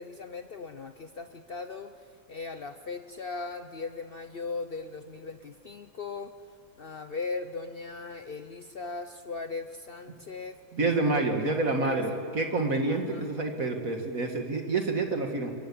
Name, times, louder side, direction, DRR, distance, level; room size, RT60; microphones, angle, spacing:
voice 1, 0.0-6.3 6.8-10.6 11.8-12.1 12.9-13.3, left 4 dB, 85° left, 8 dB, 0.5 m, -38 dB
voice 2, 10.7-15.5, right 3 dB, 45° right, 4 dB, 2.2 m, -28 dB
24.5 x 23.5 x 8.5 m, 2.2 s
omnidirectional pair, 2.2 m